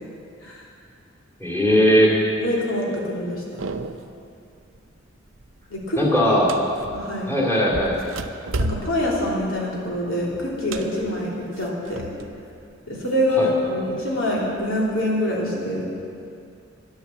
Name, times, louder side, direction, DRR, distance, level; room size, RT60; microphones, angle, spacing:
voice 1, 1.4-2.2 6.0-6.5 7.3-8.0 13.4-13.5, equal, 10° left, -3 dB, 2.4 m, -18 dB
voice 2, 2.3-3.4 5.7-6.0 6.3-6.4 6.9-7.3 8.6-11.3 11.6-12.1 12.9-15.9, left 1 dB, 85° left, -4 dB, 3.1 m, -25 dB
sound 1, 3.6-4.2 4.6-5.0 5.3-7.2 7.7-12.4 12.7-13.7 14.3-15.1, right 2 dB, 80° right, 0.6 m, -33 dB
10.5 x 10.5 x 7.2 m, 2.5 s
head